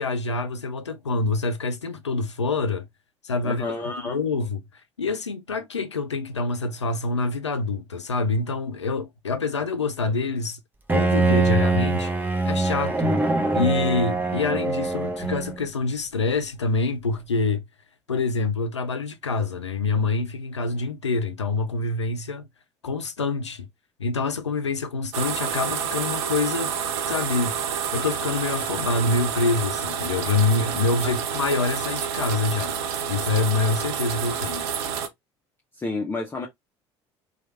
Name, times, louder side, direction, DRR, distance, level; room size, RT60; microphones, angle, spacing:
voice 1, 0.0-2.9 3.2-3.7 4.0-4.6 5.0-10.6 10.9-12.1 12.4-13.3 13.5-17.6 18.1-22.5 22.8-23.7 24.0-26.7 27.1-27.6 27.9-32.7 33.1-34.7, left 3 dB, 90° left, 0.4 m, -26 dB
voice 2, 3.4-4.2 31.0-31.1 35.8-36.5, left 3 dB, 15° left, 0.9 m, -30 dB
Bowed string instrument, 10.9-15.7, right 3 dB, 15° right, 0.7 m, -23 dB
sound 1, 25.1-35.1, right 7 dB, 65° right, 0.5 m, -29 dB
3.1 x 2.4 x 2.5 m
figure-of-eight pair, 60°, 15 cm